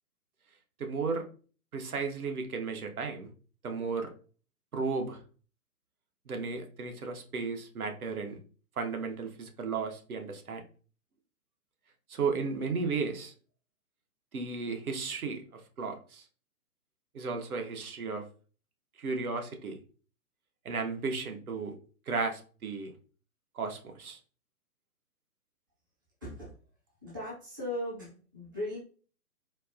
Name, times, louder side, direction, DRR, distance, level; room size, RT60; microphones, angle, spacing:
voice 1, 0.8-1.2 1.7-3.3 3.6-4.1 4.7-5.2 6.3-8.4 8.8-10.6 12.1-13.3 14.3-16.2 17.1-18.2 19.0-19.8 20.6-21.7 22.1-22.9 23.5-24.2, right 4 dB, 70° right, 5 dB, 0.9 m, -34 dB
voice 2, 26.2-26.6 27.0-28.8, left 1 dB, 15° right, -7 dB, 0.4 m, -38 dB
4.2 x 2.1 x 2.4 m, 0.39 s
figure-of-eight pair, 130°, 45 cm